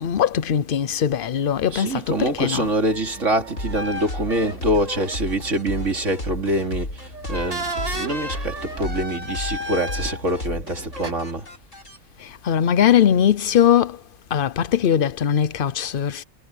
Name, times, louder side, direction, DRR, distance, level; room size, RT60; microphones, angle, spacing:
voice 1, 0.0-2.7 12.2-14.0 14.3-16.2, left 9 dB, 50° left, 0.8 m, -20 dB
voice 2, 1.7-11.5, right 1 dB, 65° right, 3.4 m, -25 dB
sound 1, 2.9-5.5 6.0-6.3 7.1-10.5 10.9-11.1, equal, 30° right, 2.5 m, -32 dB
sound 2, 3.6-12.0, left 1 dB, 70° left, 7.8 m, -33 dB
omnidirectional pair, 1.4 m